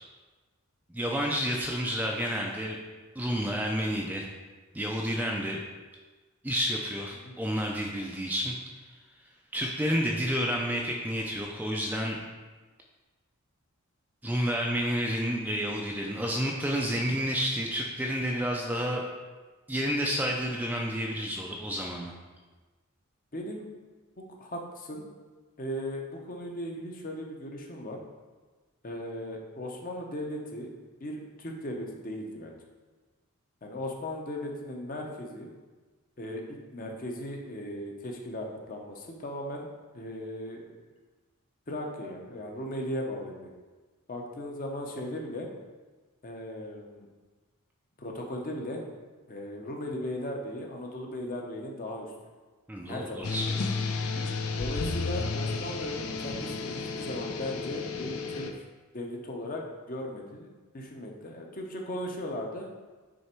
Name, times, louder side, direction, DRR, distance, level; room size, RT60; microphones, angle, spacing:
voice 1, 0.9-2.8 3.2-4.2 4.7-5.6 6.4-8.5 9.5-12.2 14.2-19.0 19.7-22.1 52.7-53.6 54.2-54.3, equal, 10° right, -1 dB, 0.4 m, -30 dB
voice 2, 23.3-23.7 24.2-25.1 25.6-28.0 28.8-30.7 31.0-32.6 33.6-35.5 36.2-39.7 39.9-40.7 41.7-43.5 44.1-45.5 46.2-47.1 48.0-48.8 49.3-52.1 52.9-53.7 54.6-58.6 58.9-60.5 60.7-62.7, left 1 dB, 40° left, 1 dB, 0.8 m, -37 dB
sound 1, 53.2-58.5, left 4 dB, 80° left, 0.5 m, -32 dB
6.4 x 3.4 x 4.4 m, 1.3 s
head